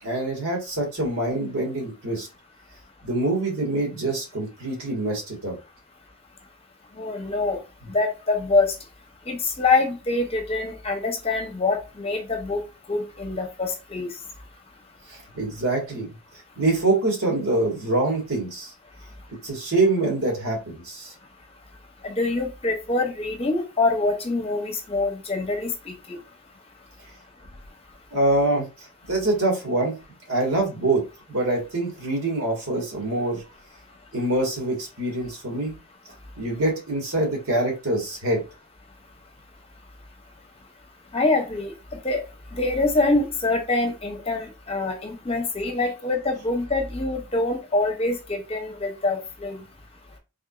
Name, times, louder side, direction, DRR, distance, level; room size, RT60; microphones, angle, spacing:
voice 1, 0.0-2.3 3.0-5.6 15.1-16.1 16.6-18.7 19.4-21.1 28.1-28.7 29.1-30.0 30.3-33.4 34.1-35.8 36.4-38.4, right 2 dB, 70° right, 0 dB, 1.7 m, -25 dB
voice 2, 6.9-7.6 7.9-8.7 9.3-12.6 12.9-14.1 22.0-26.2 41.1-42.2 42.6-49.6, left 3 dB, 25° left, 3 dB, 0.9 m, -25 dB
3.6 x 3.3 x 2.5 m, 0.28 s
head